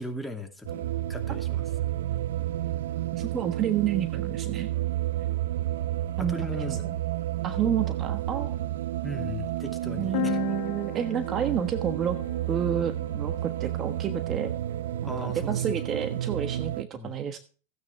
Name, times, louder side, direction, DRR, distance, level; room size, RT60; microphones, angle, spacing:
voice 1, 0.0-1.7 6.2-6.8 9.0-10.4 15.1-15.7 16.9-17.1, equal, ahead, 4 dB, 2.4 m, -37 dB
sound 1, 0.7-16.8, right 13 dB, 80° right, 0.6 m, -31 dB
voice 2, 3.1-4.7 6.2-6.7 7.4-8.6 10.0-12.2 12.5-14.5 15.2-17.4, right 9 dB, 30° right, 10 dB, 1.2 m, -30 dB
sound 2, 10.1-13.9, left 22 dB, 60° left, 0.5 m, -37 dB
15.5 x 9.5 x 3.3 m, 0.38 s
hypercardioid pair, 120°, 0 cm